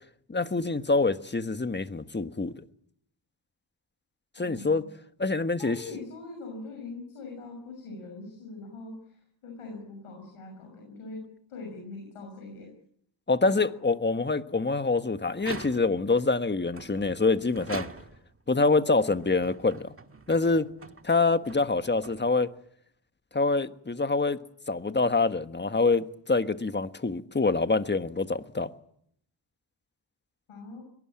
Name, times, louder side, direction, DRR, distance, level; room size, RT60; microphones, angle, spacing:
voice 1, 0.3-2.6 4.4-4.9 5.2-5.8 13.3-17.9 18.5-19.9 20.3-20.7 21.0-22.5 23.3-24.4 24.7-28.7, left 3 dB, 20° left, 1.4 m, -25 dB
voice 2, 4.4-4.9 5.6-11.2 11.5-12.7 13.4-13.6 13.8-13.9 30.5-30.8, left 3 dB, 90° left, 6.8 m, -42 dB
sound 1, 15.3-16.1 16.7-18.4 19.1-22.6, right 3 dB, 25° right, 1.8 m, -44 dB
22.5 x 18.5 x 8.8 m
cardioid pair, 65°, 50 cm